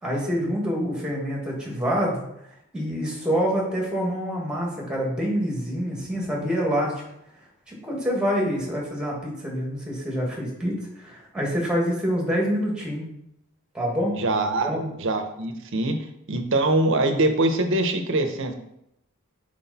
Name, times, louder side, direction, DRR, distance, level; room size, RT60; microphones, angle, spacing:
voice 1, 0.0-2.2 2.7-6.9 7.7-13.1 13.7-14.1 14.6-14.9, equal, 5° right, -2 dB, 1.7 m, -26 dB
voice 2, 14.2-14.7 15.0-16.0 16.3-18.5, right 2 dB, 60° right, 6 dB, 0.8 m, -23 dB
6.0 x 4.9 x 4.1 m, 0.80 s
head